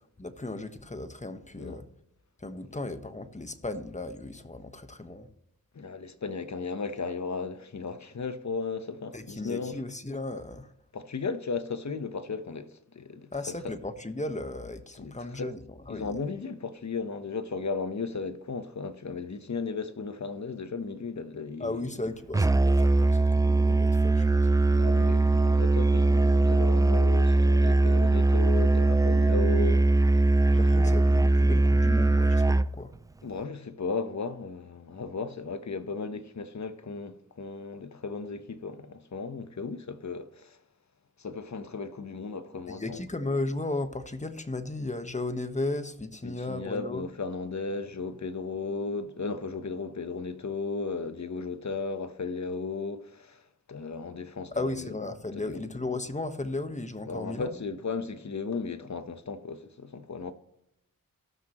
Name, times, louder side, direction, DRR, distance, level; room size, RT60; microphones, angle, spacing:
voice 1, 0.2-1.8 2.4-5.3 9.1-10.7 13.3-16.1 21.6-24.4 30.5-32.9 42.7-47.0 54.5-57.6, left 2 dB, 20° left, 1.3 m, -35 dB
voice 2, 5.7-9.8 10.9-13.8 15.0-15.5 15.9-22.0 23.6-23.9 24.7-29.9 30.5-30.9 33.2-40.6 41.2-43.0 46.2-53.4 53.7-54.9 55.3-55.6 57.0-60.3, left 4 dB, 50° left, 1.1 m, -35 dB
Musical instrument, 22.3-32.7, right 2 dB, 10° right, 0.3 m, -21 dB
18.0 x 6.2 x 3.1 m
cardioid pair, 45°, 35 cm